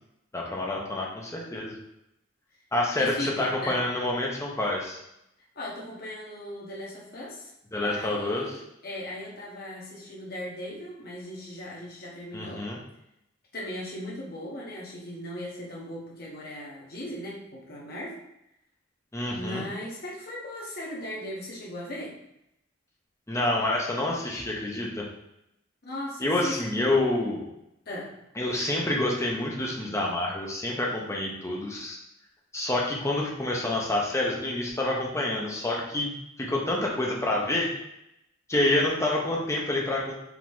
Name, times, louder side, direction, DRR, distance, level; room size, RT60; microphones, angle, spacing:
voice 1, 0.3-1.7 2.7-5.0 7.7-8.5 12.3-12.8 19.1-19.7 23.3-25.0 26.2-27.5 28.4-32.0 32.5-36.1 36.4-37.7 38.5-40.1, left 1 dB, 15° left, -2 dB, 0.8 m, -27 dB
voice 2, 2.9-3.8 5.5-7.5 7.8-12.6 13.5-18.2 19.3-22.2 25.8-26.7 27.9-28.1, left 1 dB, 50° left, -4 dB, 1.3 m, -38 dB
4.9 x 3.0 x 3.7 m, 0.83 s
head